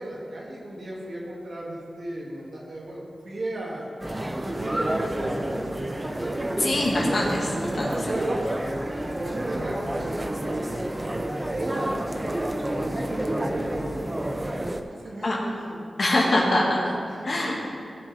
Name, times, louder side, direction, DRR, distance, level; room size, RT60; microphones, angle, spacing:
voice 1, 0.0-3.9 4.4-6.4 7.7-8.7 8.9-10.9 11.4-14.1 15.0-15.8 16.2-17.3, right 1 dB, 65° right, -4 dB, 2.6 m, -35 dB
sound 1, 4.0-14.8, right 1 dB, 20° right, 0.8 m, -29 dB
voice 2, 6.6-8.1 15.2-15.4 16.0-16.8 17.3-17.5, left 1 dB, 60° left, -3 dB, 2.4 m, -24 dB
16.5 x 7.0 x 3.6 m, 2.3 s
cardioid pair, 60°, 0 cm